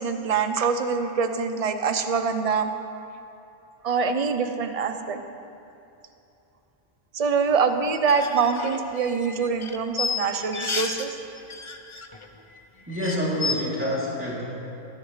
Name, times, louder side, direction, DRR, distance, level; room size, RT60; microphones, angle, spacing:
voice 1, 0.0-2.7 3.8-5.2 7.1-11.2, right 5 dB, 35° right, 7 dB, 0.7 m, -24 dB
sound 1, 7.9-11.1 11.4-12.3 12.5-12.6 12.9-13.5, left 4 dB, 30° left, 0.7 m, -31 dB
voice 2, 12.9-14.5, equal, 10° right, -7 dB, 2.9 m, -27 dB
26.5 x 11.0 x 3.3 m, 2.8 s
omnidirectional pair, 1.2 m